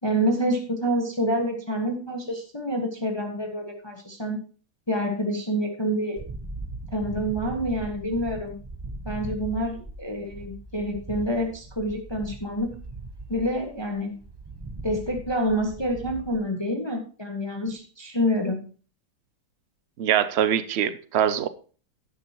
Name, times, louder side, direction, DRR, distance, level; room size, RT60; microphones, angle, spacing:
voice 1, 0.0-4.4 4.9-6.2 6.9-8.5 9.0-12.7 13.3-14.2 14.8-18.7, equal, 15° left, 1.3 m, -27 dB
sound 1, 6.2-16.4, right 2 dB, 25° right, 0.6 m, -39 dB
voice 2, 20.0-21.5, right 9 dB, 90° right, 0.5 m, -23 dB
12.0 x 10.0 x 2.9 m
omnidirectional pair, 1.9 m